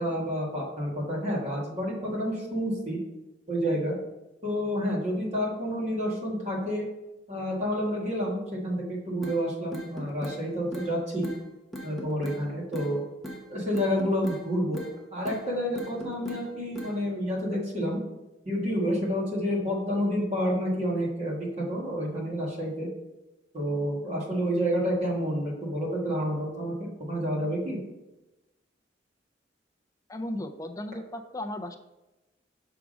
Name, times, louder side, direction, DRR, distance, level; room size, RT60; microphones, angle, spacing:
voice 1, 0.0-3.0 3.5-4.0 4.4-6.9 7.3-11.3 11.8-13.0 13.5-14.8 15.1-18.0 18.5-22.9 23.5-27.8, equal, 40° right, -4 dB, 1.8 m, -29 dB
sound 1, 9.2-9.4 9.7-10.4 10.7-10.9 11.2-11.4 11.7-12.4 12.7-12.9 13.2-13.4 13.7-14.4 14.7-14.9 15.2-15.4 15.7-16.4 16.7-16.9, equal, ahead, 0.9 m, -39 dB
voice 2, 30.1-31.8, left 1 dB, 20° left, 5 dB, 0.4 m, -35 dB
6.0 x 3.6 x 5.0 m, 1.0 s
head